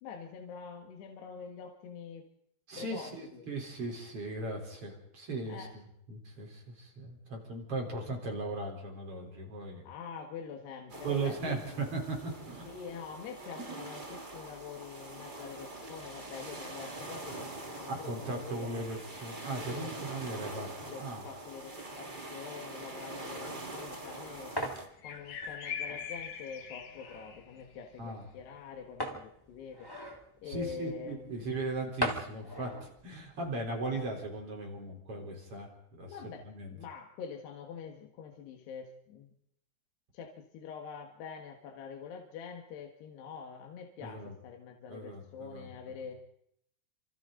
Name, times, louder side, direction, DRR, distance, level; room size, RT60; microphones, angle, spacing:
voice 1, 0.0-2.3 2.8-3.4 5.5-5.7 9.8-11.8 12.7-17.5 17.8-18.7 19.5-20.1 20.8-24.6 25.0-29.9 30.4-31.6 32.6-32.7 33.9-34.0 36.1-39.3 40.1-46.2, left 6 dB, 75° left, 2 dB, 3.7 m, -45 dB
voice 2, 2.7-9.8 11.0-12.7 13.6-13.9 17.9-21.2 28.0-28.2 30.4-32.7 33.0-36.1 36.4-36.8 44.0-44.3 44.9-45.7, right 2 dB, 35° right, 2 dB, 4.5 m, -38 dB
sound 1, 10.9-24.9, right 2 dB, 55° right, 0.5 m, -44 dB
sound 2, 23.6-23.8 25.0-27.6, left 7 dB, 55° left, 2.4 m, -41 dB
sound 3, 23.7-34.1, equal, 15° left, 0.9 m, -42 dB
29.0 x 27.0 x 3.9 m, 0.74 s
omnidirectional pair, 4.9 m